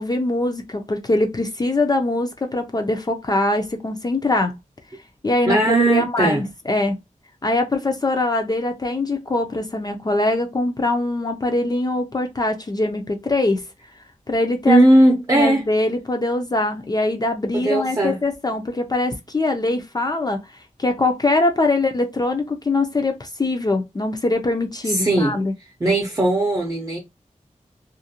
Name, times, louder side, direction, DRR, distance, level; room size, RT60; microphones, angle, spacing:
voice 1, 0.0-4.5 5.2-7.0 7.4-13.6 14.3-14.8 15.3-20.4 20.8-25.5, left 2 dB, 30° left, 0.4 m, -22 dB
voice 2, 5.5-6.4 14.7-15.6 17.5-18.2 24.8-25.4 25.8-27.0, right 1 dB, 25° right, 0.6 m, -18 dB
2.5 x 2.1 x 2.7 m
wide cardioid pair, 75°, 13 cm